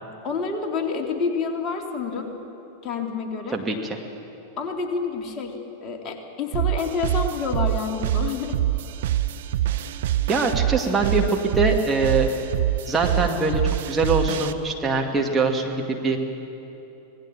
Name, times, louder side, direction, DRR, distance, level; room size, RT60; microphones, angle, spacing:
voice 1, 0.2-2.3 2.8-3.6 4.6-8.6, left 5 dB, 30° left, 2 dB, 2.6 m, -28 dB
voice 2, 3.5-4.0 10.3-12.3 12.9-13.6 13.9-16.2, right 3 dB, 15° right, 1 dB, 2.1 m, -23 dB
sound 1, 6.5-14.5, right 13 dB, 55° right, 0.8 m, -25 dB
26.0 x 18.5 x 7.4 m, 2.9 s
figure-of-eight pair, 90°, 0 cm